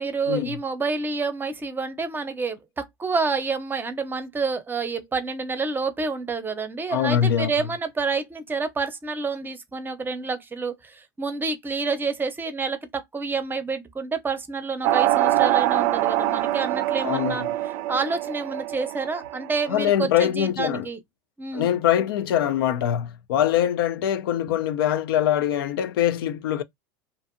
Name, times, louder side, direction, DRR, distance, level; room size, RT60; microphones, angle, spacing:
voice 1, 0.0-17.4 17.9-21.0 21.4-21.7 24.5-24.6, right 4 dB, 15° right, 0.6 m, -28 dB
voice 2, 6.9-7.5 17.0-17.5 19.7-20.9 21.5-26.6, left 10 dB, 85° left, 0.4 m, -23 dB
sound 1, 14.8-19.8, right 14 dB, 60° right, 0.4 m, -24 dB
2.6 x 2.5 x 2.5 m
supercardioid pair, 105°, 12 cm